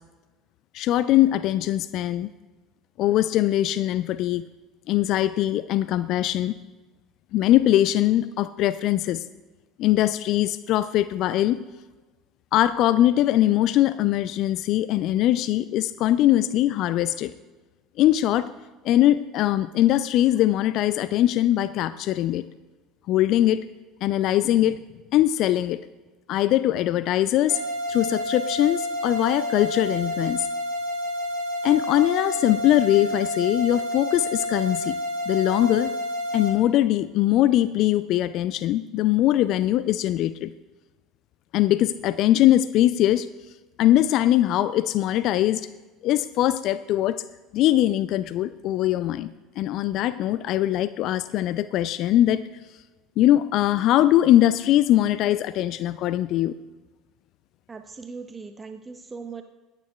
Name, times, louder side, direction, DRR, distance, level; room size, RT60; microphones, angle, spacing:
voice 1, 0.7-2.3 3.0-4.4 4.9-6.5 7.3-9.2 9.8-11.6 12.5-17.3 18.0-18.5 18.8-22.4 23.1-23.6 24.0-24.8 25.1-25.8 26.3-27.6 27.9-30.5 31.6-34.9 35.3-35.9 36.3-40.5 41.5-43.3 43.8-45.7 46.0-47.2 47.5-49.3 49.6-52.5 53.2-56.5, left 13 dB, 55° left, 16 dB, 0.3 m, -21 dB
sound 1, 27.5-36.5, left 1 dB, 65° right, 2.3 m, -29 dB
voice 2, 57.7-59.4, right 5 dB, 20° right, 7 dB, 0.7 m, -39 dB
22.5 x 9.8 x 2.3 m, 1.2 s
figure-of-eight pair, 65°, 0 cm